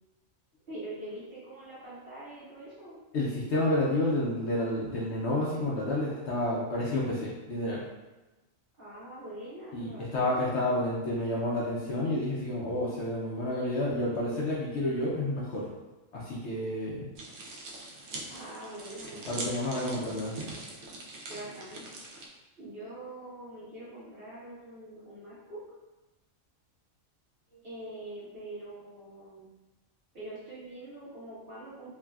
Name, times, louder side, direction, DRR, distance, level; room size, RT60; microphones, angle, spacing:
voice 1, 0.7-3.0 8.8-10.5 18.3-19.2 21.3-21.8 22.6-25.6 27.6-29.5 30.1-31.9, right 1 dB, 45° right, -11 dB, 1.3 m, -44 dB
voice 2, 3.1-7.8 9.7-15.6 16.1-17.1 19.3-20.3, left 1 dB, 65° left, -6 dB, 0.8 m, -30 dB
sound 1, 17.2-22.3, right 2 dB, 65° right, 0.8 m, -42 dB
3.2 x 2.1 x 2.3 m, 1.1 s
omnidirectional pair, 1.4 m